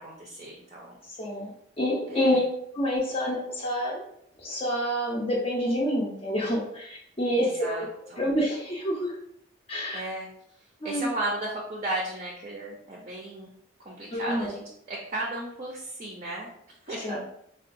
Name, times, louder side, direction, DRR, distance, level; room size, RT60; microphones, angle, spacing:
voice 1, 0.0-0.9 2.1-2.4 7.3-7.8 8.1-8.3 9.9-10.3 10.8-13.5 13.8-16.5 16.9-17.2, right 1 dB, 35° right, -2 dB, 0.4 m, -35 dB
voice 2, 1.1-2.4 2.7-4.0 4.4-7.9 8.2-9.2 9.7-10.0 10.8-11.1 14.1-14.5 17.0-17.2, equal, 30° left, -4 dB, 0.5 m, -28 dB
3.6 x 2.2 x 2.5 m, 0.72 s
head